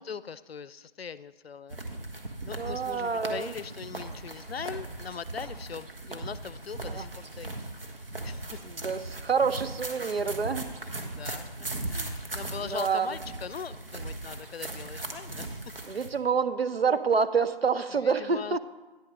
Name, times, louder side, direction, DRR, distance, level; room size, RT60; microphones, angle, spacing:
voice 1, 0.0-1.8 2.4-7.5 8.2-8.5 11.0-15.5 18.0-18.6, left 6 dB, 85° left, 17 dB, 0.5 m, -40 dB
sound 1, 1.7-16.1, right 2 dB, 70° right, 1.4 m, -38 dB
voice 2, 2.6-3.5 6.9-7.1 8.6-10.8 12.6-13.1 15.9-18.6, right 5 dB, 85° right, 12 dB, 0.7 m, -27 dB
10.0 x 6.3 x 5.0 m, 1.2 s
figure-of-eight pair, 170°, 30 cm